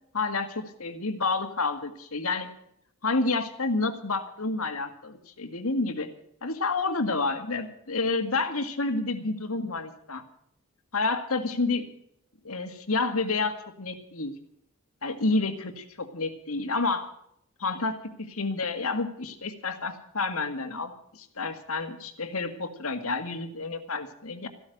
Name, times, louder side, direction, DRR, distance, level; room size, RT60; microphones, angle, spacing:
voice 1, 0.1-2.5 3.0-6.1 6.4-10.2 10.9-11.8 12.4-14.4 15.0-17.1 17.6-24.5, left 3 dB, 80° left, 8 dB, 2.0 m, -29 dB
15.0 x 12.5 x 6.7 m, 0.71 s
head